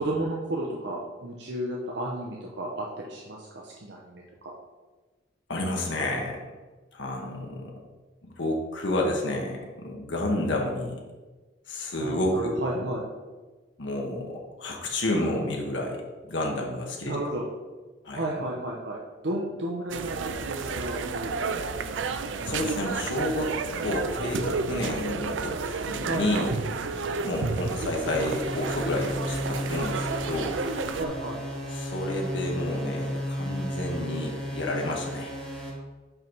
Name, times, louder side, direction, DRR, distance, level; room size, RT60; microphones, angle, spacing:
voice 1, 0.0-4.5 12.0-13.1 17.0-17.5 18.1-21.3 26.1-26.5 31.0-31.4, right 1 dB, 65° right, -2 dB, 0.8 m, -33 dB
voice 2, 5.5-6.4 6.9-7.7 8.2-11.0 11.7-12.6 13.8-17.1 18.0-18.2 22.4-26.5 27.0-30.6 31.7-35.3, left 1 dB, 80° left, 0 dB, 1.1 m, -30 dB
sound 1, 19.9-31.1, right 4 dB, 90° right, 0.5 m, -31 dB
sound 2, 28.0-35.7, equal, ahead, 1.4 m, -33 dB
5.6 x 5.4 x 4.6 m, 1.3 s
head